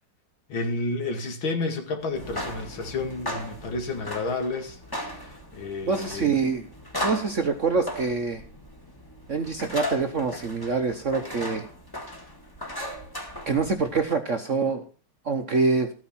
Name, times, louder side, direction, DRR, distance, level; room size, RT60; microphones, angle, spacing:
voice 1, 0.5-4.8 5.1-6.4, left 3 dB, 70° left, 6 dB, 2.8 m, -31 dB
sound 1, 2.1-14.0, left 1 dB, 10° left, 1.7 m, -37 dB
voice 2, 5.8-6.7 7.0-8.4 9.3-11.6 13.5-14.8 15.2-15.9, right 4 dB, 50° right, 6 dB, 1.0 m, -25 dB
14.0 x 9.2 x 4.3 m, 0.39 s
omnidirectional pair, 2.3 m